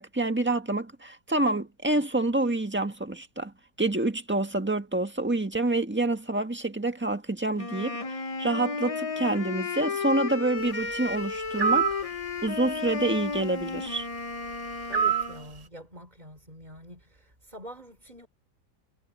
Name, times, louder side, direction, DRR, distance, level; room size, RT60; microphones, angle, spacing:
voice 1, 0.0-11.9 12.4-14.1, right 2 dB, 5° right, 1.5 m, -27 dB
Wind instrument woodwind instrument, 7.6-15.5, left 4 dB, 45° left, 0.4 m, -33 dB
sound 1, 11.6-12.0 14.9-15.3, right 8 dB, 50° right, 0.4 m, -24 dB
voice 2, 14.9-18.3, right 1 dB, 25° right, 3.9 m, -45 dB
omnidirectional pair, 1.9 m